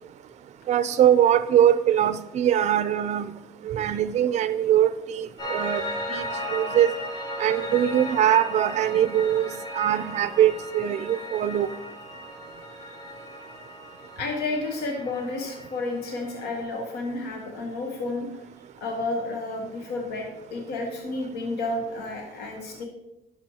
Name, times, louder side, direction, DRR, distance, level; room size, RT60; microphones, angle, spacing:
voice 1, 0.7-3.3 3.6-5.8 6.1-6.2 6.5-6.9 7.4-11.7, right 10 dB, 45° right, 14 dB, 0.4 m, -22 dB
Piano, 5.4-16.6, equal, 25° left, 2.9 m, -36 dB
voice 2, 14.2-18.3 18.8-22.9, left 2 dB, 80° left, 2 dB, 1.1 m, -31 dB
10.0 x 6.0 x 2.9 m, 0.96 s
cardioid pair, 110°, 17 cm